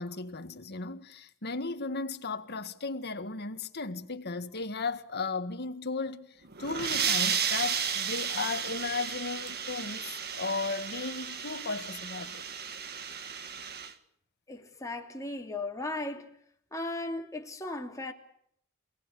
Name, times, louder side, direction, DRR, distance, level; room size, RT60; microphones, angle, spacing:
voice 1, 0.0-12.4, left 4 dB, 50° left, 1.8 m, -35 dB
sound 1, 6.4-13.9, right 7 dB, 50° right, 1.8 m, -33 dB
voice 2, 14.5-16.3 16.7-18.1, left 2 dB, 15° left, 2.9 m, -36 dB
28.5 x 18.5 x 8.5 m
head